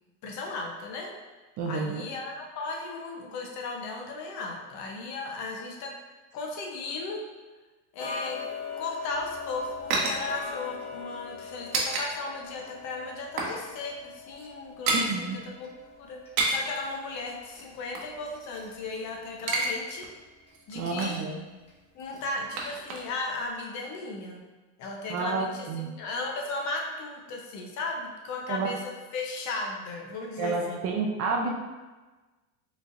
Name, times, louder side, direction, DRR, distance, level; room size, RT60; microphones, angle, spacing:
voice 1, 0.2-1.1 1.7-5.9 6.3-7.2 7.9-8.4 8.8-15.3 15.6-15.7 16.0-16.2 16.5-20.1 20.7-21.2 21.9-24.4 24.8-30.8, left 3 dB, 45° left, 1 dB, 0.8 m, -36 dB
voice 2, 1.6-2.1 14.9-15.4 20.7-21.4 25.1-25.9 28.5-28.7 30.4-31.5, right 4 dB, 40° right, 1 dB, 0.5 m, -30 dB
Tick-tock, 8.0-18.8 19.2-19.3 19.9-20.0 20.5-20.6 21.1-21.2 21.7-21.8 22.3-22.4 22.9-23.0, left 5 dB, 15° left, 0.8 m, -41 dB
sound 1, 9.1-12.1 12.4-12.5 12.9-13.6 13.9-14.0 14.3-15.1 16.1-16.8 17.5-19.0 19.3-19.7 20.0-20.1 20.5-21.3 22.0-23.3 23.5-23.6, right 3 dB, 85° right, 0.9 m, -31 dB
4.6 x 3.3 x 2.5 m, 1.2 s
supercardioid pair, 135°, 40 cm